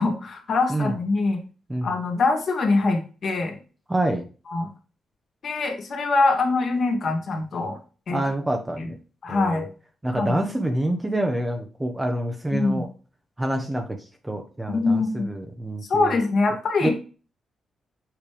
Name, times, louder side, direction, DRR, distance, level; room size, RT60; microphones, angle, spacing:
voice 1, 0.0-1.4 1.8-3.6 4.5-4.7 5.4-7.8 8.1-8.2 8.8-8.9 9.2-9.7 10.1-10.4 12.5-12.8 14.7-15.3 15.9-16.9, left 3 dB, 60° left, 3 dB, 2.3 m, -23 dB
voice 2, 3.9-4.2 8.1-8.9 9.3-9.6 10.0-12.9 13.4-14.0 14.2-16.2 16.8-16.9, right 1 dB, 15° right, 4 dB, 1.1 m, -26 dB
7.6 x 3.3 x 5.1 m, 0.35 s
cardioid pair, 75°, 0 cm